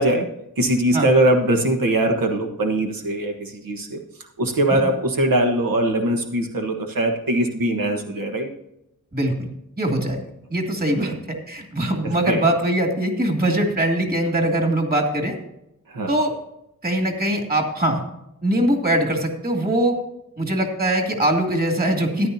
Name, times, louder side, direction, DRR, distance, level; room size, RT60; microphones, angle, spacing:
voice 1, 0.0-4.0 4.4-8.5 10.9-11.2 12.0-12.4 15.9-16.1, right 1 dB, 90° right, 2 dB, 1.4 m, -21 dB
voice 2, 9.1-9.5 9.8-10.2 10.5-15.4 16.1-16.3 16.8-18.0 18.4-20.0 20.4-22.3, right 1 dB, 25° right, 2 dB, 2.4 m, -22 dB
14.5 x 10.5 x 2.8 m, 0.83 s
wide cardioid pair, 115°, 34 cm